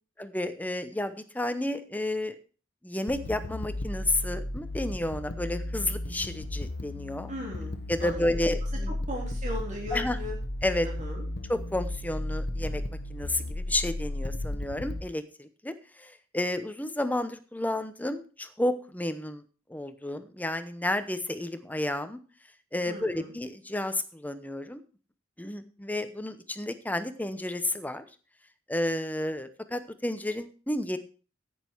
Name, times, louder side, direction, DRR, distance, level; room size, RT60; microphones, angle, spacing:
voice 1, 0.2-2.4 2.8-7.3 7.9-9.0 9.9-10.2 10.6-10.9 11.5-12.8 13.1-19.4 19.7-22.2 22.7-24.8 25.4-28.0 28.7-31.0, left 1 dB, 10° left, 10 dB, 0.8 m, -31 dB
sound 1, 3.1-15.0, left 1 dB, 60° left, 1.1 m, -34 dB
voice 2, 7.3-7.7 8.0-8.5 9.1-10.3 10.8-11.2 22.9-23.3, left 1 dB, 40° right, -1 dB, 3.4 m, -38 dB
10.0 x 9.2 x 4.6 m, 0.36 s
head